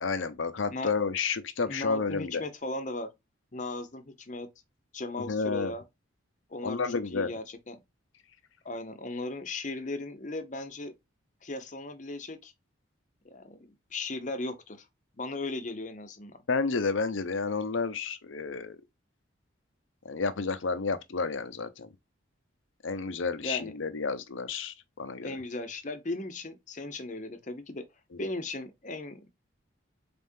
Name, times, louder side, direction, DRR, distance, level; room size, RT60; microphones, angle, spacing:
voice 1, 0.0-2.4 5.3-5.7 6.6-7.3 16.5-18.8 20.0-21.9 22.8-25.3, left 4 dB, 80° left, 0.7 m, -31 dB
voice 2, 1.7-3.1 3.5-4.5 4.9-5.8 6.5-7.8 8.6-10.9 11.4-12.5 13.2-14.9 15.2-16.4 23.4-23.7 25.2-27.8 28.2-29.3, left 2 dB, 40° left, 0.7 m, -37 dB
4.2 x 3.6 x 2.6 m
head